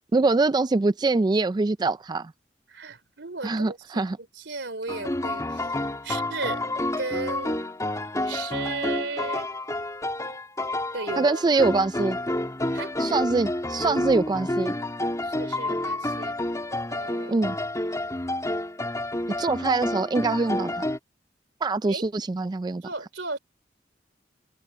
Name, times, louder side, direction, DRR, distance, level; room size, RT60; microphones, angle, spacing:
voice 1, 0.1-2.3 3.4-4.2 11.2-12.2 13.0-14.7 17.3-17.6 19.4-20.8 21.6-22.8, right 3 dB, 25° right, 0.3 m, -24 dB
voice 2, 2.7-4.0 4.3-5.8 6.0-6.6 7.0-7.6 8.3-9.5 10.9-11.6 12.7-12.9 15.2-16.4 16.9-17.4 21.9-22.0 22.8-23.4, right 3 dB, 85° right, 3.1 m, -35 dB
sound 1, 4.9-21.0, left 1 dB, 20° left, 2.8 m, -29 dB
open air
head